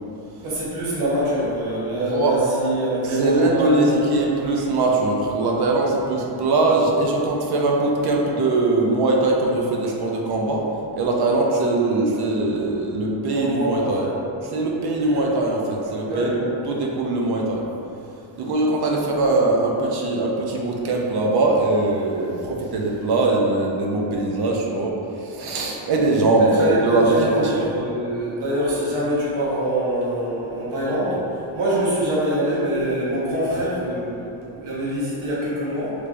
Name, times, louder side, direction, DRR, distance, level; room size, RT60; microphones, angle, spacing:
voice 1, 0.4-4.1 13.3-14.2 15.1-15.3 16.0-16.5 26.4-31.2 31.5-35.9, right 1 dB, 80° right, -8 dB, 1.1 m, -24 dB
voice 2, 3.1-10.6 10.9-14.1 14.5-17.6 18.4-27.6, right 2 dB, 55° right, -1 dB, 0.5 m, -21 dB
3.4 x 3.2 x 2.5 m, 2.8 s
cardioid pair, 155°, 48 cm